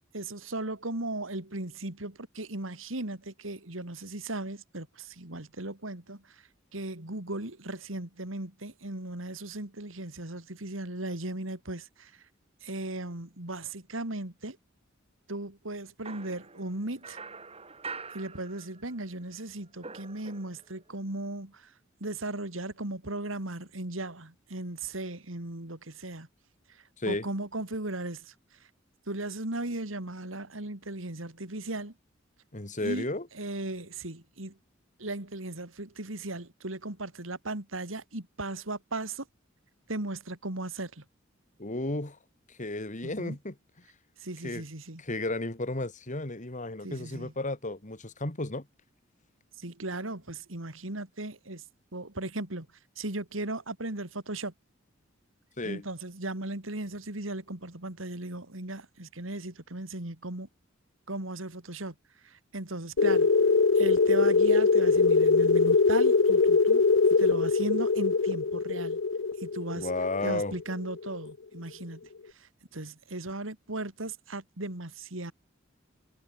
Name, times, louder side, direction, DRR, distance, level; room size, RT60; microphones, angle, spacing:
voice 1, 0.0-12.2 12.6-14.6 15.3-17.2 18.1-21.7 22.0-26.3 26.7-28.3 28.6-28.7 29.1-31.9 32.8-34.6 35.0-39.3 39.9-41.0 43.0-43.4 44.2-45.0 46.8-47.3 49.6-51.6 51.9-52.7 53.0-54.5 55.6-60.5 61.1-61.9 62.2-63.3 63.7-69.0 69.4-69.9 70.2-72.0 72.3-75.3, right 2 dB, 85° right, 3.3 m, -37 dB
sound 1, 16.0-19.1 19.3-20.8, right 4 dB, 30° right, 5.6 m, -45 dB
voice 2, 32.5-33.3 41.6-42.2 42.5-43.5 44.4-44.6 45.0-48.7 55.6-55.8 69.8-70.5, left 2 dB, 40° left, 2.7 m, -33 dB
sound 2, 63.0-71.3, left 4 dB, 70° left, 0.7 m, -23 dB
head